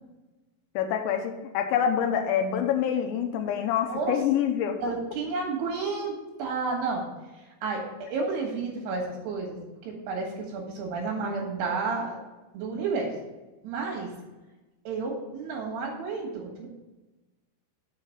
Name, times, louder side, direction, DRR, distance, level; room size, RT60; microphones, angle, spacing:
voice 1, 0.8-4.8, left 9 dB, 80° left, 6 dB, 2.9 m, -26 dB
voice 2, 3.9-4.2 4.8-7.1 7.4-9.6 9.8-12.2 12.5-13.2 13.6-14.1 14.8-16.7, right 4 dB, 70° right, 0 dB, 3.3 m, -31 dB
6.3 x 5.8 x 6.4 m, 1.1 s
omnidirectional pair, 5.3 m